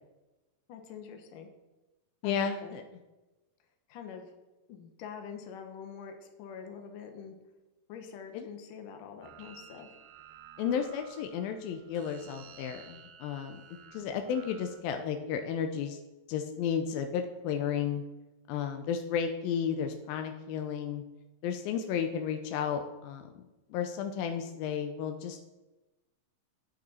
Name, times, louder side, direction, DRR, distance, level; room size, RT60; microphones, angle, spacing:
voice 1, 0.7-1.5 2.2-2.8 3.9-4.3 4.7-7.4 7.9-10.0, left 7 dB, 70° left, 5 dB, 2.6 m, -45 dB
voice 2, 2.2-2.8 8.3-8.5 10.6-13.6 13.9-16.0 16.3-18.0 18.5-21.0 21.4-23.4 23.7-25.4, left 7 dB, 85° left, 6 dB, 2.4 m, -33 dB
sound 1, 9.2-14.8, right 9 dB, 80° right, 2.2 m, -53 dB
9.0 x 8.7 x 4.3 m, 1.1 s
omnidirectional pair, 4.1 m